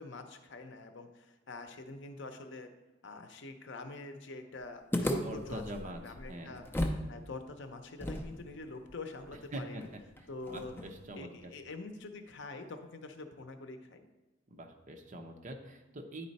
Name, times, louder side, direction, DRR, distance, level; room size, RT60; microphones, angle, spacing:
voice 1, 0.0-2.7 3.0-6.6 7.1-9.9 10.3-10.7 11.1-14.1, left 2 dB, 65° left, 7 dB, 0.7 m, -45 dB
sound 1, 4.9-7.1 7.3-7.4 8.0-11.1, left 1 dB, 10° left, 0.6 m, -37 dB
voice 2, 5.2-6.7 9.5-9.8 10.5-11.5 14.5-16.3, right 1 dB, 40° right, 4 dB, 0.8 m, -43 dB
9.9 x 4.2 x 4.1 m, 1.1 s
head